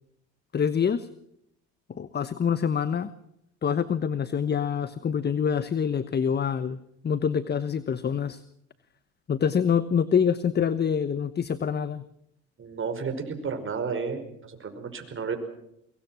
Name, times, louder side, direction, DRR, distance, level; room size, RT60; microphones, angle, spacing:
voice 1, 0.5-1.1 1.9-3.1 3.6-8.4 9.3-12.0, left 7 dB, 30° left, 15 dB, 1.1 m, -26 dB
voice 2, 12.6-15.4, right 5 dB, 40° right, 6 dB, 5.5 m, -32 dB
23.5 x 23.0 x 6.3 m, 0.77 s
supercardioid pair, 85°, 32 cm